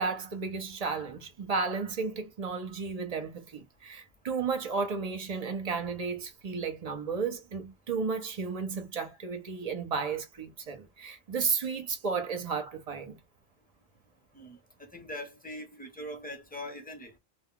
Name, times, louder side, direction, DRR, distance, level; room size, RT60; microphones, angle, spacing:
voice 1, 0.0-13.2, right 5 dB, 40° right, 0.7 m, -33 dB
voice 2, 14.3-17.1, left 1 dB, 10° left, 0.7 m, -42 dB
2.4 x 2.3 x 3.7 m
omnidirectional pair, 1.2 m